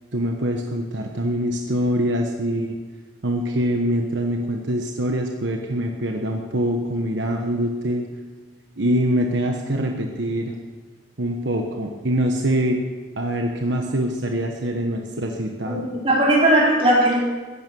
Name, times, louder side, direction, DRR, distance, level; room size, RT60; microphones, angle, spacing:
voice 1, 0.1-2.8 3.2-8.1 8.8-10.5 11.2-12.8 13.2-15.8, equal, 70° right, 2 dB, 1.2 m, -24 dB
voice 2, 15.6-17.2, right 1 dB, 30° right, -4 dB, 4.5 m, -18 dB
15.5 x 11.0 x 6.9 m, 1.4 s
head